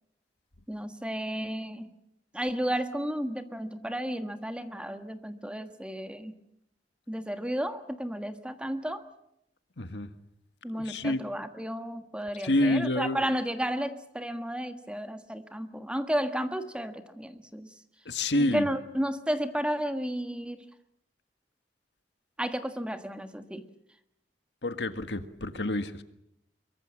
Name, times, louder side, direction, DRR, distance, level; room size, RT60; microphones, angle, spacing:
voice 1, 0.7-1.9 2.3-6.3 7.1-9.0 10.6-17.7 18.3-20.6 22.4-23.7, equal, 5° right, 8 dB, 1.5 m, -33 dB
voice 2, 9.8-10.1 10.7-11.2 12.4-13.2 18.0-18.7 24.6-26.0, left 1 dB, 80° left, 9 dB, 1.7 m, -28 dB
23.5 x 23.5 x 7.5 m, 0.79 s
head